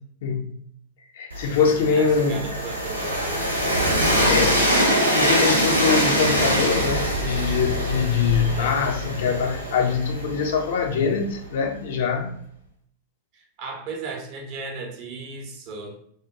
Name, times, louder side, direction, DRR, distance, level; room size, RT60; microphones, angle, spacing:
voice 1, 0.2-0.6 1.1-2.5 4.0-4.6 5.1-12.4, left 5 dB, 55° left, 4 dB, 0.4 m, -23 dB
Train, 1.3-11.1, equal, 90° right, 0.5 m, -23 dB
voice 2, 1.5-3.4 4.2-4.7 8.3-8.7 13.3-16.0, right 4 dB, 45° right, 1 dB, 0.6 m, -36 dB
2.2 x 2.0 x 2.8 m, 0.65 s
figure-of-eight pair, 90°, 0 cm